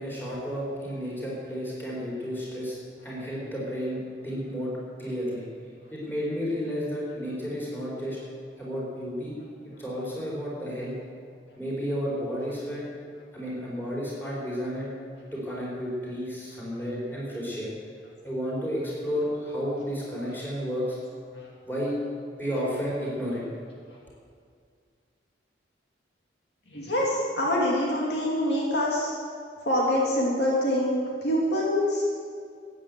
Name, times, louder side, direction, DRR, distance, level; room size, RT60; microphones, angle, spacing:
voice 1, 0.0-2.8 3.0-4.0 4.2-4.7 5.0-5.4 5.9-8.2 8.6-9.4 9.8-10.9 11.6-12.8 13.3-14.9 15.3-17.7 18.2-21.0 21.6-21.9 22.4-23.4, equal, 10° left, -6 dB, 4.9 m, -32 dB
voice 2, 26.7-29.1 29.6-32.2, left 1 dB, 65° left, -4 dB, 2.5 m, -25 dB
13.5 x 9.5 x 8.0 m, 2.2 s
head